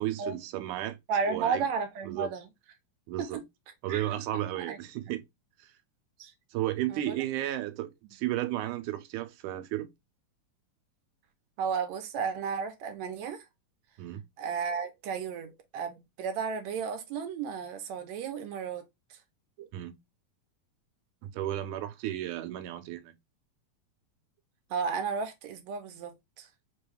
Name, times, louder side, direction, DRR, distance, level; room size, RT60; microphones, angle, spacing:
voice 1, 0.0-1.0 1.3-1.7 2.0-2.3 3.1-3.4 3.8-5.2 5.6-5.7 6.5-9.9 14.0-14.2 19.7-19.9 21.2-23.2, right 13 dB, 90° right, 2.0 m, -33 dB
voice 2, 1.1-2.4 3.2-3.4 3.9-4.0 4.7-4.8 6.2-6.3 6.9-7.2 11.6-13.4 14.4-18.9 19.6-19.7 24.7-26.5, right 6 dB, 75° right, 1.9 m, -33 dB
5.3 x 2.3 x 3.2 m
omnidirectional pair, 3.4 m